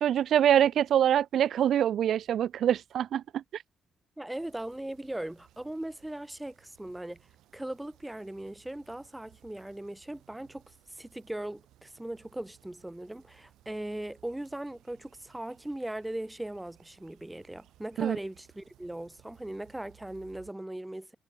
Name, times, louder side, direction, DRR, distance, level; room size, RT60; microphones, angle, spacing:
voice 1, 0.0-3.4 18.0-18.2, right 10 dB, 70° right, 0.4 m, -24 dB
voice 2, 4.2-7.2 7.5-21.2, right 1 dB, 10° right, 2.3 m, -39 dB
sound 1, 4.3-20.5, right 13 dB, 85° right, 3.1 m, -62 dB
cardioid pair, 90°, 0 cm